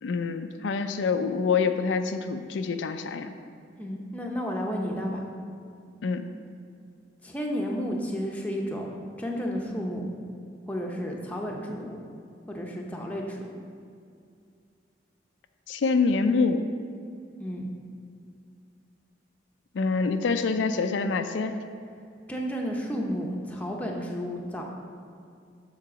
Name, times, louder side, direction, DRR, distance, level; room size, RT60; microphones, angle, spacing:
voice 1, 0.0-3.3 6.0-6.3 15.7-16.6 19.7-21.5, left 4 dB, 85° left, 8 dB, 0.4 m, -26 dB
voice 2, 3.8-5.2 7.2-10.1 10.7-12.0 12.5-13.4 17.4-17.6 22.3-24.6, equal, 10° left, 0 dB, 0.7 m, -32 dB
7.3 x 3.9 x 6.1 m, 2.3 s
head